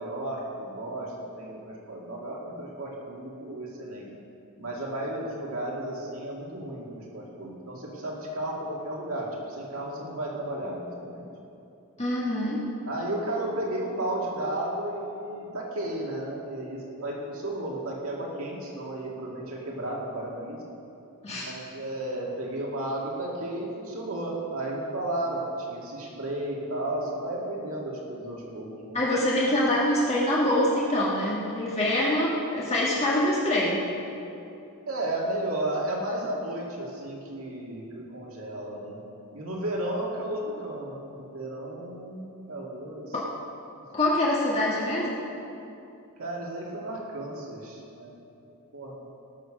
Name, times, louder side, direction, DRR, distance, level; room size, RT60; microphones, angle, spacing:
voice 1, 0.0-4.1 4.6-11.3 12.4-12.6 12.9-20.6 21.3-29.0 34.9-39.0 39.3-43.1 46.2-48.2 48.7-49.0, right 1 dB, 70° right, -3 dB, 2.2 m, -33 dB
voice 2, 12.0-12.6 21.2-21.5 28.9-33.8 43.1-43.3 43.9-45.2, left 1 dB, 30° left, -5 dB, 1.6 m, -25 dB
19.0 x 6.3 x 6.4 m, 2.8 s
head